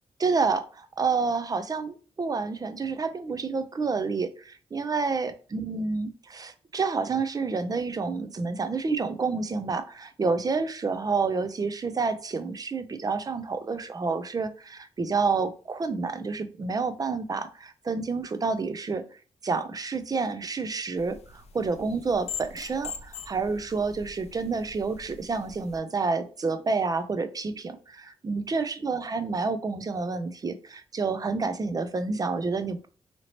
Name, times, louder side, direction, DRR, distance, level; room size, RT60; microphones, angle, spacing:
voice 1, 0.2-19.0 19.4-32.9, right 4 dB, 35° right, 10 dB, 0.4 m, -29 dB
sound 1, 21.0-25.8, left 6 dB, 75° left, 0.4 m, -42 dB
2.9 x 2.8 x 2.8 m, 0.38 s
cardioid pair, 75°, 11 cm